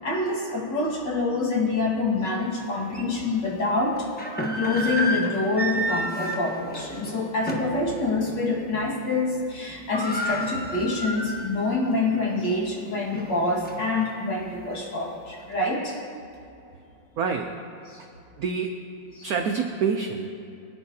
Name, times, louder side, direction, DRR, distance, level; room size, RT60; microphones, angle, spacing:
voice 1, 0.0-4.1 4.5-16.0 17.9-18.0 19.2-19.3, left 2 dB, 55° left, -3 dB, 2.5 m, -26 dB
sound 1, 2.3-2.4 2.9-3.0 4.0-7.8 8.2-8.4 8.7-9.2 9.4-9.5 9.7-11.7 12.1-12.2 12.8-14.1, equal, 10° left, 0.6 m, -31 dB
voice 2, 17.2-17.5 18.0-18.1 18.4-18.7 19.2-20.3, right 5 dB, 80° right, 4 dB, 0.8 m, -26 dB
22.0 x 9.6 x 2.8 m, 2.6 s
omnidirectional pair, 2.3 m